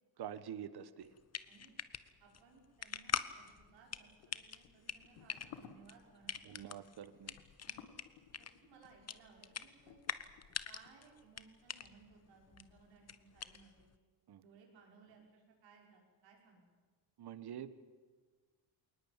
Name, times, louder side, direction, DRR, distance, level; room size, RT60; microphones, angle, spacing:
voice 1, 0.2-1.1 6.5-7.3 14.3-14.4 17.2-17.7, right 9 dB, 60° right, 14 dB, 1.5 m, -46 dB
sound 1, 1.0-14.0, left 7 dB, 35° left, 1.1 m, -45 dB
voice 2, 2.2-6.6 7.6-7.9 8.4-10.0 10.7-13.9 14.4-16.6, right 5 dB, 90° right, 0 dB, 6.0 m, -62 dB
sound 2, 3.9-10.9, left 9 dB, 90° left, 1.7 m, -59 dB
21.0 x 19.5 x 9.0 m, 1.4 s
cardioid pair, 85°, 43 cm